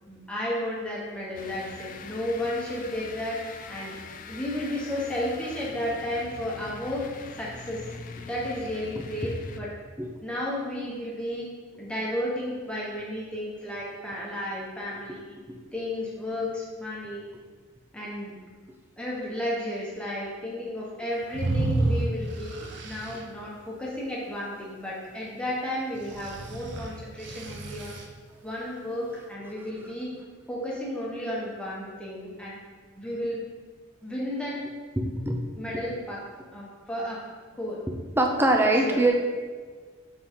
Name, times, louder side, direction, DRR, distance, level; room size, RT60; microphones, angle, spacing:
voice 1, 0.0-3.4 3.7-3.9 4.3-7.1 7.4-7.9 8.3-9.7 10.2-11.5 11.8-15.4 15.7-17.2 17.9-18.3 19.0-27.9 28.4-30.1 30.5-32.6 33.0-33.4 34.0-34.6 35.6-36.2 36.5-37.2 37.6-37.8 38.6-39.0, left 1 dB, 5° left, -6 dB, 1.2 m, -33 dB
sound 1, 1.3-9.9, left 4 dB, 40° left, 0.3 m, -43 dB
sound 2, 21.3-23.2 26.0-28.0, right 2 dB, 55° right, 0.7 m, -30 dB
voice 2, 35.0-35.4 38.2-39.1, right 2 dB, 10° right, 2 dB, 0.5 m, -23 dB
6.9 x 4.0 x 3.7 m, 1.5 s
head